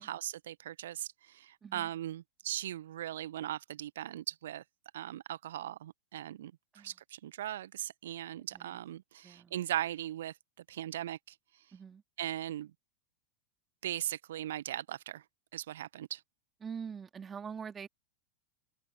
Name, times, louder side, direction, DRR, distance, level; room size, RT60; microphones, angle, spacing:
voice 1, 0.0-4.6 4.9-10.3 10.7-11.3 12.2-12.7 13.8-15.2 15.5-16.2, right 12 dB, 60° right, 1.4 m, -39 dB
voice 2, 9.2-9.6 11.7-12.0 16.6-17.9, right 6 dB, 20° right, 2.3 m, -44 dB
open air
figure-of-eight pair, 90°, 0 cm